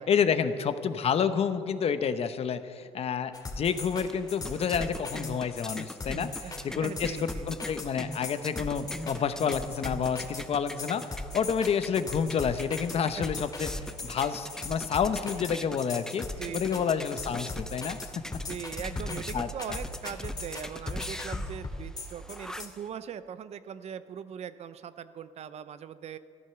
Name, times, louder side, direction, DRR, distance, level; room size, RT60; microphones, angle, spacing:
voice 1, 0.0-13.7 14.0-16.3 16.5-18.0 19.3-19.8, left 7 dB, 55° left, 11 dB, 0.9 m, -29 dB
sound 1, 3.3-22.7, left 2 dB, 30° left, 2.3 m, -38 dB
sound 2, 3.7-22.9, left 1 dB, 5° left, 0.5 m, -43 dB
voice 2, 6.4-7.5 12.5-12.6 16.2-16.9 18.5-26.2, right 8 dB, 60° right, 13 dB, 0.7 m, -41 dB
14.0 x 12.0 x 7.0 m, 2.3 s
cardioid pair, 110°, 13 cm